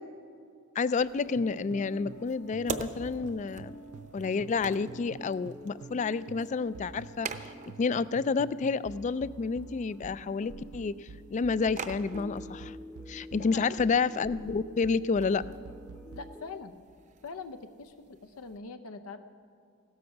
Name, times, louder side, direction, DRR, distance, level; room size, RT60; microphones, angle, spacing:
voice 1, 0.8-3.7 4.1-7.3 7.8-12.8 13.1-15.4, left 4 dB, 35° left, 18 dB, 0.3 m, -29 dB
sound 1, 1.0-16.7, equal, 10° left, 0.7 m, -49 dB
sound 2, 1.0-18.6, right 4 dB, 35° right, 0.7 m, -46 dB
sound 3, 1.3-2.3 2.5-6.0 6.3-16.4, right 5 dB, 85° right, 0.4 m, -48 dB
voice 2, 13.4-13.8 16.1-16.8 17.2-19.2, left 4 dB, 80° left, 8 dB, 0.6 m, -43 dB
16.0 x 13.0 x 5.8 m, 2.3 s
head